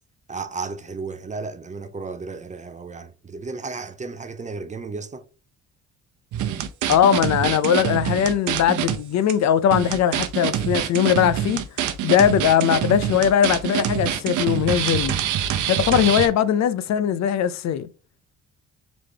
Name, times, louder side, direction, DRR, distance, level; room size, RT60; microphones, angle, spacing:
voice 1, 0.3-5.2, right 4 dB, 25° right, 0.6 m, -33 dB
sound 1, 6.3-9.0 9.3-9.4 9.7-16.3, right 10 dB, 80° right, 0.7 m, -25 dB
voice 2, 6.9-11.6 12.0-15.2 15.7-17.9, left 9 dB, 65° left, 0.5 m, -20 dB
4.0 x 3.3 x 3.3 m
cardioid pair, 90°, 30 cm